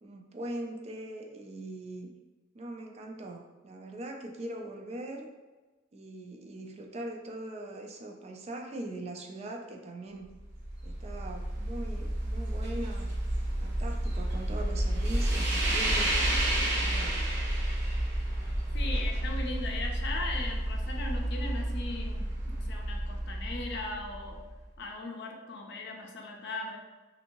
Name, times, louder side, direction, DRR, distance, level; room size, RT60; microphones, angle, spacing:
voice 1, 0.0-2.1 2.5-5.3 5.9-10.3 10.8-13.1 13.6-16.2 16.8-17.3, right 1 dB, 35° right, 3 dB, 0.3 m, -41 dB
sound 1, 10.4-24.6, right 1 dB, 60° right, 0.7 m, -30 dB
voice 2, 18.7-24.4 24.8-26.8, left 2 dB, 60° left, 1 dB, 0.5 m, -38 dB
2.6 x 2.6 x 2.9 m, 1.2 s
head